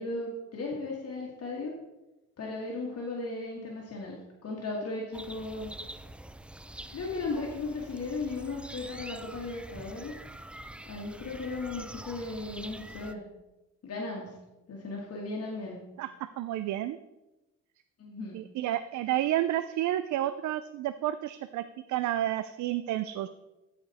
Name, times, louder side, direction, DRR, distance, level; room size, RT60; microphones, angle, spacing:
voice 1, 0.0-1.7 2.4-5.7 6.9-10.1 10.8-13.2 13.8-14.3 14.7-15.8 18.0-18.4, left 3 dB, 55° left, -2 dB, 1.8 m, -36 dB
sound 1, 5.1-13.1, right 1 dB, 5° right, 0.3 m, -45 dB
voice 2, 16.4-17.0 18.3-21.6 21.9-23.3, right 13 dB, 70° right, 12 dB, 0.5 m, -30 dB
13.0 x 5.2 x 4.1 m, 1.0 s
cardioid pair, 90°, 30 cm